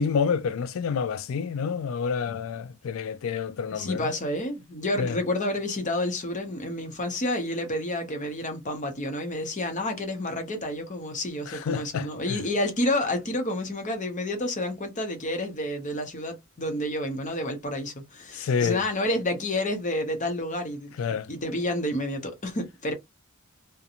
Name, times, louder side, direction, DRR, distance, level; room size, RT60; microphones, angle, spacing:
voice 1, 0.0-4.1 5.0-5.1 11.5-12.1 18.4-18.8 21.0-21.3, left 6 dB, 70° left, 0.3 m, -28 dB
voice 2, 3.7-20.9 21.3-22.9, left 1 dB, 35° left, 0.8 m, -29 dB
2.5 x 2.2 x 2.8 m
head